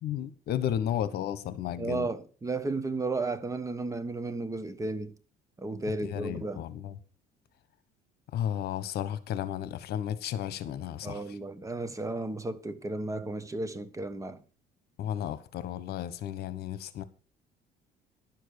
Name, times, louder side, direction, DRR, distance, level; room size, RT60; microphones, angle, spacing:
voice 1, 0.0-2.1 5.9-7.0 8.3-11.4 15.0-17.0, left 10 dB, 70° left, 1.2 m, -33 dB
voice 2, 1.8-5.2 5.6-6.6 11.0-14.4, right 2 dB, 20° right, 1.3 m, -34 dB
11.0 x 7.5 x 6.6 m
cardioid pair, 110°, 17 cm